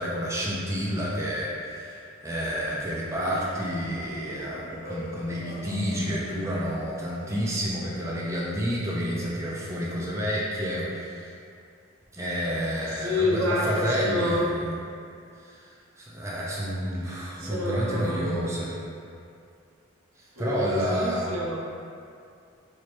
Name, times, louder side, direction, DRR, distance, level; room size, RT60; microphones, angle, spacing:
voice 1, 0.0-11.3 12.1-14.7 15.4-15.7 16.0-18.7 20.2-21.3, equal, 15° right, -5 dB, 0.4 m, -29 dB
sound 1, 3.1-7.7, equal, 40° left, 0.7 m, -42 dB
voice 2, 13.0-14.5 17.4-18.7 20.4-21.6, left 1 dB, 85° right, -3 dB, 0.7 m, -28 dB
3.0 x 2.7 x 4.4 m, 2.4 s
head